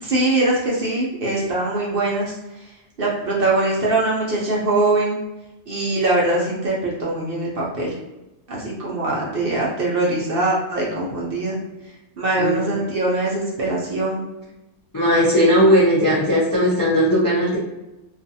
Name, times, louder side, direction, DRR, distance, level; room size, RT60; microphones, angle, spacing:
voice 1, 0.0-2.3 3.0-5.2 5.7-7.9 8.5-11.6 12.2-14.2, right 2 dB, 55° right, -4 dB, 0.8 m, -22 dB
voice 2, 12.4-12.9 14.9-17.6, equal, 30° left, -7 dB, 0.4 m, -17 dB
2.5 x 2.4 x 2.6 m, 0.97 s
omnidirectional pair, 1.3 m